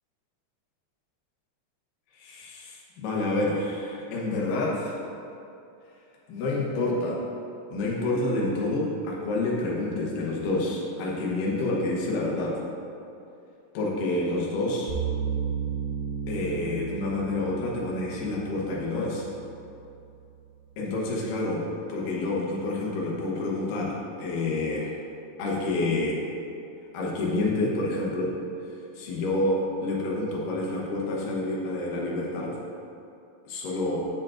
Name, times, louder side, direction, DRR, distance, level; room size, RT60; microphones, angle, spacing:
voice 1, 2.2-5.0 6.3-7.2 7.7-12.6 13.7-14.9 16.3-19.3 20.8-24.9 25.4-26.2 26.9-28.3 29.0-32.5 33.5-34.1, left 2 dB, 65° left, -4 dB, 2.4 m, -28 dB
sound 1, 14.9-20.0, right 7 dB, 85° right, 1.4 m, -34 dB
8.6 x 7.3 x 2.5 m, 2.6 s
omnidirectional pair, 4.8 m